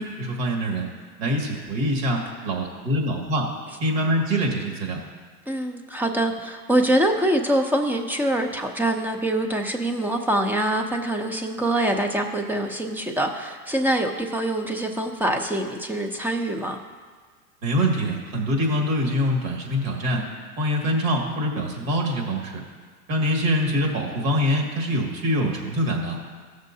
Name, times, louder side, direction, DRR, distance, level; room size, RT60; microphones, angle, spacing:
voice 1, 0.2-0.9 1.2-3.5 3.8-5.0 17.6-20.2 20.6-22.6 23.1-26.2, equal, 55° right, 0 dB, 2.2 m, -24 dB
voice 2, 5.5-16.8, right 1 dB, 5° right, 4 dB, 0.5 m, -24 dB
15.5 x 6.5 x 2.7 m, 1.5 s
hypercardioid pair, 110°, 46 cm